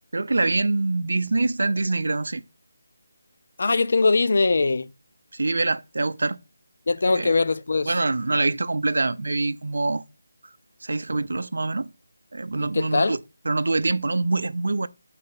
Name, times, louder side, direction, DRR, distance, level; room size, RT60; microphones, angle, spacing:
voice 1, 0.1-2.4 5.3-6.4 7.1-7.3 7.9-10.0 10.8-11.9 12.3-13.2 13.4-14.9, right 3 dB, 70° right, 0.5 m, -24 dB
voice 2, 3.6-4.9 6.9-7.9 12.6-13.2, left 3 dB, 55° left, 0.5 m, -21 dB
4.3 x 4.2 x 5.7 m
figure-of-eight pair, 170°, 0 cm